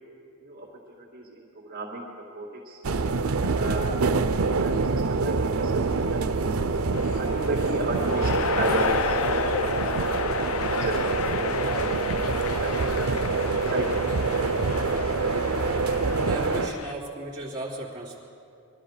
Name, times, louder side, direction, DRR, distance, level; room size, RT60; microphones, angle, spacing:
voice 1, 1.0-2.8 3.4-3.8 4.6-6.2 7.2-9.9 10.5-12.1 12.3-13.0 13.5-14.0, right 1 dB, 45° right, -4 dB, 2.3 m, -34 dB
sound 1, 2.8-16.7, right 4 dB, 80° right, 0.6 m, -26 dB
sound 2, 6.9-16.9, left 6 dB, 80° left, 0.5 m, -32 dB
voice 2, 16.0-18.2, right 1 dB, 20° right, -7 dB, 3.0 m, -35 dB
22.0 x 12.5 x 5.0 m, 2.7 s
head